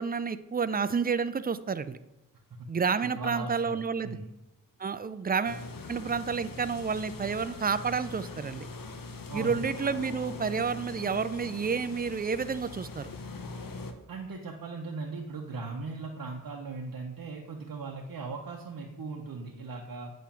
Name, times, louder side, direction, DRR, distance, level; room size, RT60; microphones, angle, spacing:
voice 1, 0.0-2.0 2.7-4.1 4.8-8.7 9.3-13.1, right 5 dB, 30° right, 14 dB, 0.4 m, -30 dB
voice 2, 3.1-4.3 9.3-9.7 14.1-20.1, right 3 dB, 85° right, 0 dB, 0.8 m, -38 dB
sound 1, 5.4-13.9, left 3 dB, 75° left, 0.8 m, -42 dB
8.6 x 3.1 x 5.8 m, 0.98 s
wide cardioid pair, 55°, 34 cm